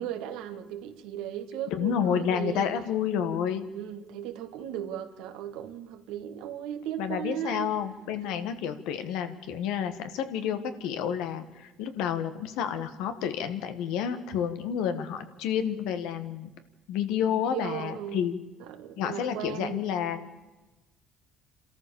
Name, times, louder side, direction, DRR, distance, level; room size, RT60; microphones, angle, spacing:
voice 1, 0.0-2.7 3.7-7.7 8.2-8.3 17.4-18.3 18.6-19.8, right 10 dB, 85° right, 1.8 m, -37 dB
voice 2, 1.7-3.7 7.0-16.5 16.9-18.4 19.0-20.2, left 8 dB, 85° left, 1.8 m, -30 dB
27.5 x 13.5 x 7.1 m
supercardioid pair, 85°, 0 cm